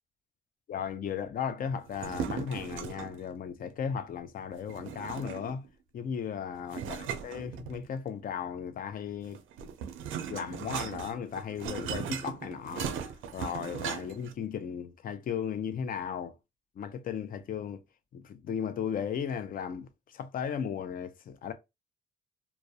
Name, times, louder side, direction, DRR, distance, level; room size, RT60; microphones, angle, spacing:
voice 1, 0.7-5.7 5.9-9.4 10.3-12.9 13.3-16.3 16.8-17.8 18.1-21.5, left 7 dB, 45° left, 0.4 m, -36 dB
sound 1, 1.9-3.2 4.7-5.7 6.7-8.1 9.2-14.3, right 8 dB, 80° right, 0.4 m, -38 dB
2.3 x 2.0 x 2.6 m
cardioid pair, 90°, 20 cm